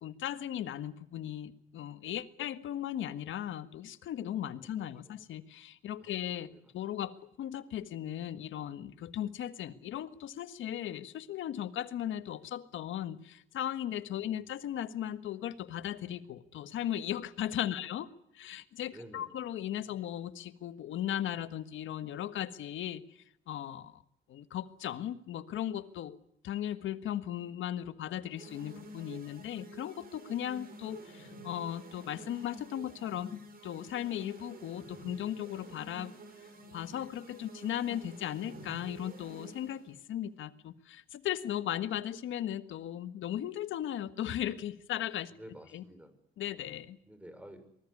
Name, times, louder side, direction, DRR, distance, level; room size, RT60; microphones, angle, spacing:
voice 1, 0.0-18.1 18.3-24.0 24.3-26.2 26.4-36.1 36.7-45.3 45.7-45.8 46.4-47.0, left 11 dB, 80° left, 12 dB, 1.6 m, -37 dB
voice 2, 18.9-19.3 45.3-46.1 47.1-47.8, right 1 dB, 5° right, 10 dB, 6.3 m, -51 dB
sound 1, 28.4-39.9, right 1 dB, 50° right, 7.1 m, -50 dB
24.0 x 20.0 x 9.8 m, 0.71 s
cardioid pair, 90°, 20 cm